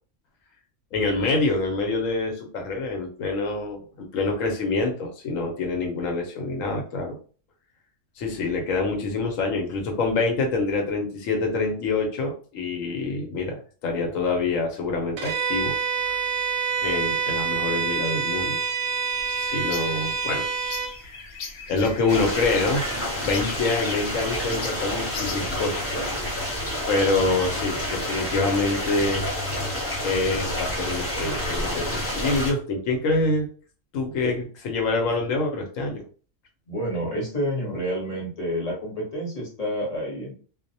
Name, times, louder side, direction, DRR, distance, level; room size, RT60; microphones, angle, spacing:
voice 1, 0.9-7.2 8.2-15.8 16.1-16.2 16.8-18.6 19.4-20.5 21.7-22.8 23.2-25.8 26.9-29.3 30.0-33.5 33.9-36.0, left 3 dB, 85° left, 2 dB, 1.0 m, -26 dB
Bowed string instrument, 15.2-21.0, right 6 dB, 85° right, 1.0 m, -27 dB
sound 1, 19.1-25.8, left 4 dB, 65° left, 0.7 m, -39 dB
sound 2, 22.1-32.5, left 1 dB, 20° left, 0.4 m, -29 dB
voice 2, 36.7-40.3, equal, 35° left, -3 dB, 0.9 m, -29 dB
2.3 x 2.0 x 2.6 m, 0.40 s
omnidirectional pair, 1.3 m